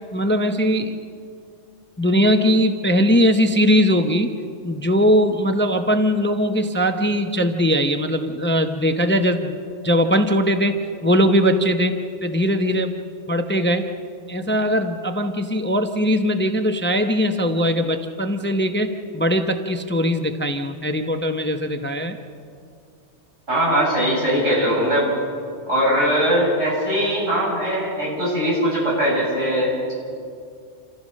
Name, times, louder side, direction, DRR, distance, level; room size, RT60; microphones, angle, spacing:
voice 1, 0.1-1.0 2.0-4.3 4.6-9.6 9.8-13.0 13.3-13.8 14.3-22.2, equal, 10° left, 6 dB, 0.7 m, -20 dB
voice 2, 23.5-25.1 25.7-29.9, equal, 80° right, -5 dB, 7.9 m, -20 dB
28.0 x 14.5 x 6.5 m, 2.3 s
omnidirectional pair, 1.2 m